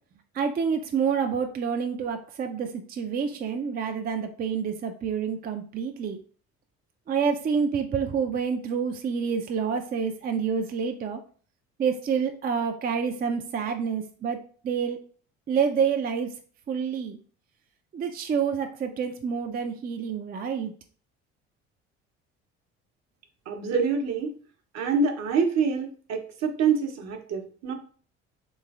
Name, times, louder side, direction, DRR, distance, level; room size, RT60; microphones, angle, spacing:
voice 1, 0.4-6.2 7.1-11.2 11.8-14.4 14.6-15.0 15.5-16.3 16.7-17.2 17.9-20.7, right 6 dB, 30° right, 6 dB, 0.4 m, -28 dB
voice 2, 23.5-24.3 24.7-27.7, right 5 dB, 55° right, 4 dB, 0.8 m, -26 dB
3.1 x 3.0 x 2.4 m, 0.43 s
hypercardioid pair, 65°, 32 cm